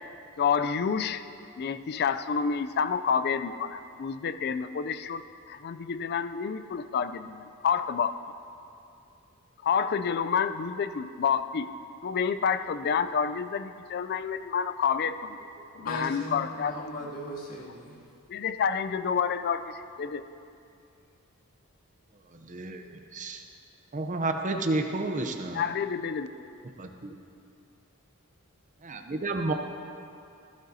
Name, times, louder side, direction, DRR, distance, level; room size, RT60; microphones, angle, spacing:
voice 1, 0.4-1.2 1.6-5.2 5.5-8.2 9.6-11.7 12.0-15.4 15.7-16.8 18.3-20.3 25.5-26.5, left 6 dB, 45° left, 12 dB, 0.3 m, -29 dB
voice 2, 15.5-18.0, equal, 80° left, -6 dB, 2.5 m, -39 dB
voice 3, 22.5-22.8 23.1-23.4 23.9-25.6 26.8-27.2 28.8-29.5, right 2 dB, 35° right, 5 dB, 0.6 m, -30 dB
15.0 x 12.0 x 2.7 m, 2.6 s
head